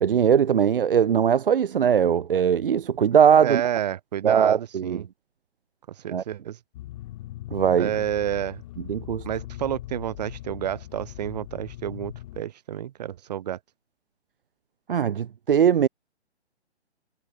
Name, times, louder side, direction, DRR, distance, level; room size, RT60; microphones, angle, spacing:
voice 1, 0.0-3.6 4.2-5.0 6.1-6.2 7.5-7.9 8.9-9.2 14.9-15.9, right 8 dB, 55° right, 0.6 m, -20 dB
voice 2, 3.4-5.0 5.9-6.6 7.7-8.6 9.2-13.6, right 10 dB, 40° right, 3.3 m, -30 dB
sound 1, 6.7-12.4, left 15 dB, 30° left, 3.2 m, -40 dB
hypercardioid pair, 155°, 34 cm